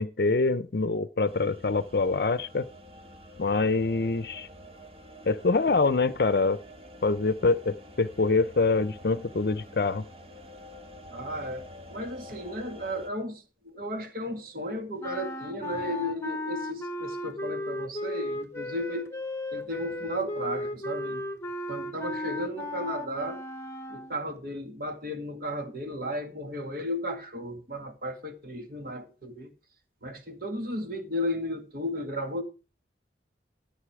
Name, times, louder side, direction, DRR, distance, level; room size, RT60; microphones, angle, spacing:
voice 1, 0.0-2.7 3.4-4.5 5.3-6.6 7.0-10.0, left 3 dB, 60° left, 0.6 m, -25 dB
sound 1, 1.2-13.1, left 1 dB, 35° right, 1.5 m, -48 dB
voice 2, 11.1-11.6 11.9-19.1 19.5-21.2 21.7-23.4 23.9-29.5 30.0-32.4, equal, 55° right, 2.0 m, -34 dB
sound 2, 15.0-24.2, left 1 dB, 15° left, 1.1 m, -35 dB
13.5 x 7.6 x 4.8 m
head